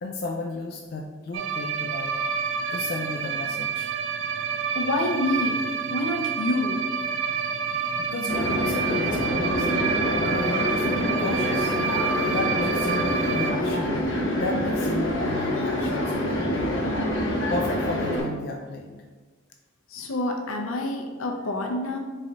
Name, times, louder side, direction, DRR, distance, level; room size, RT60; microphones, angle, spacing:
voice 1, 0.0-3.9 8.0-9.7 10.1-11.7 12.2-16.9 17.5-19.0, left 2 dB, 50° left, 0 dB, 0.3 m, -34 dB
sound 1, 1.3-13.5, right 6 dB, 65° right, 0.3 m, -28 dB
voice 2, 4.7-5.6 5.9-6.8 19.9-22.0, left 1 dB, 90° left, 1 dB, 0.7 m, -27 dB
sound 2, 8.3-18.2, left 1 dB, 75° left, 1.1 m, -26 dB
4.1 x 3.2 x 3.7 m, 1.4 s
head